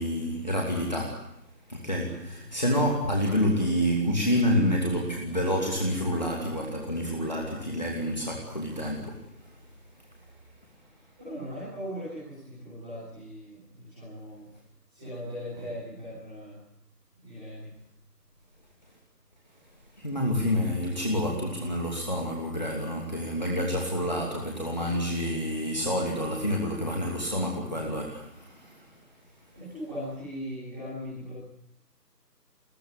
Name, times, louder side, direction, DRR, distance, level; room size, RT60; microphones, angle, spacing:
voice 1, 0.0-1.4 1.7-9.2 20.0-29.0, equal, 25° left, -1 dB, 2.7 m, -28 dB
voice 2, 11.2-14.5 14.9-16.6 17.2-17.8 29.5-31.4, equal, ahead, -15 dB, 5.4 m, -39 dB
21.0 x 20.5 x 9.7 m, 0.74 s
figure-of-eight pair, 175°, 49 cm